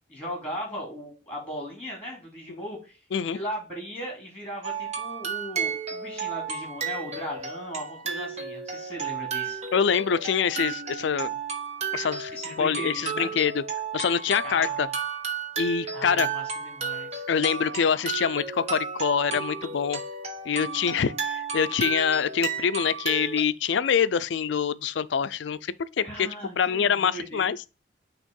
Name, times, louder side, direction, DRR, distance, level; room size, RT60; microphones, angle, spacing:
voice 1, 0.1-3.0 3.3-9.6 12.3-13.3 14.4-14.8 15.9-17.2 26.0-27.5, equal, 5° left, 2.6 m, -37 dB
sound 1, 4.6-23.4, right 6 dB, 35° right, 1.1 m, -33 dB
voice 2, 9.7-11.3 11.9-13.6 13.9-14.9 15.6-16.3 17.3-20.0 20.4-26.3 26.6-27.6, left 7 dB, 65° left, 0.4 m, -25 dB
6.3 x 3.0 x 5.3 m
head